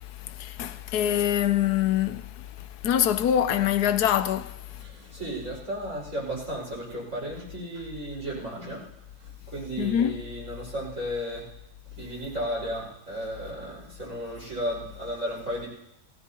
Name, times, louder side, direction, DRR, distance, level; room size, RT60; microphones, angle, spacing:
voice 1, 0.4-2.2 2.8-4.5 9.8-10.1, left 10 dB, 75° left, 1.2 m, -24 dB
voice 2, 4.7-8.9 9.2-11.4 11.9-15.7, equal, 50° right, 5.6 m, -34 dB
21.0 x 15.0 x 2.8 m
omnidirectional pair, 1.8 m